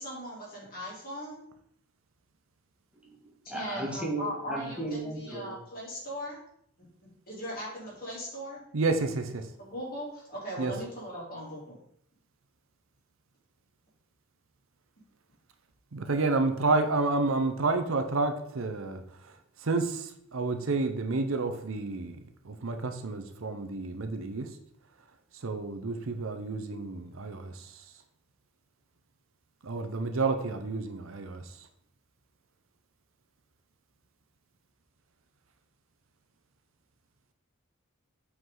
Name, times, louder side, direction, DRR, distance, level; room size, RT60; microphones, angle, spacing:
voice 1, 0.0-1.4 3.5-6.4 7.3-8.6 9.6-11.8, equal, 45° left, -5 dB, 3.1 m, -39 dB
voice 2, 2.9-5.5, right 2 dB, 5° right, -3 dB, 1.5 m, -36 dB
voice 3, 8.7-9.4 10.6-10.7 15.9-19.3 19.6-22.2 22.4-24.5 25.4-27.7 29.6-31.5, right 3 dB, 65° right, 7 dB, 0.7 m, -30 dB
7.9 x 4.8 x 3.8 m, 0.70 s
head